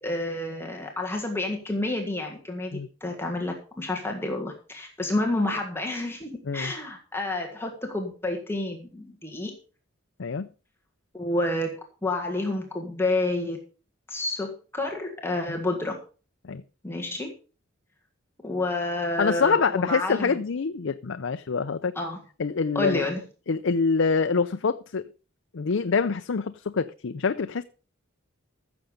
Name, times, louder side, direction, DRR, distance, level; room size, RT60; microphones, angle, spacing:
voice 1, 0.0-9.5 11.1-13.6 14.1-16.0 16.8-17.3 18.4-20.3 21.9-22.2 22.7-23.2, left 2 dB, 10° left, 1.6 m, -29 dB
voice 2, 19.2-21.9 22.4-23.0 23.5-25.1 25.5-27.6, left 5 dB, 70° left, 0.5 m, -25 dB
14.5 x 7.1 x 5.1 m
head